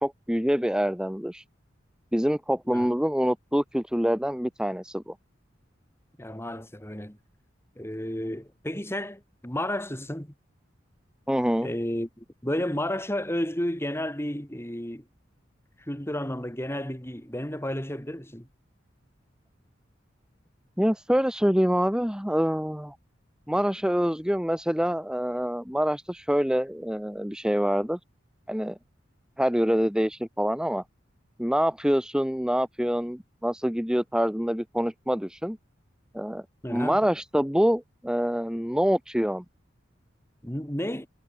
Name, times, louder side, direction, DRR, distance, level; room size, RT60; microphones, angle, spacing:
voice 1, 0.0-1.4 2.1-5.1 11.3-11.7 20.8-22.9 23.5-28.0 28.5-28.8 29.4-30.8 31.4-35.6 36.1-36.4 36.7-39.4, equal, 5° right, 1.7 m, -26 dB
voice 2, 6.2-7.2 7.8-10.3 11.6-15.0 15.9-18.5 36.6-37.0 40.4-41.1, left 1 dB, 15° left, 4.6 m, -32 dB
head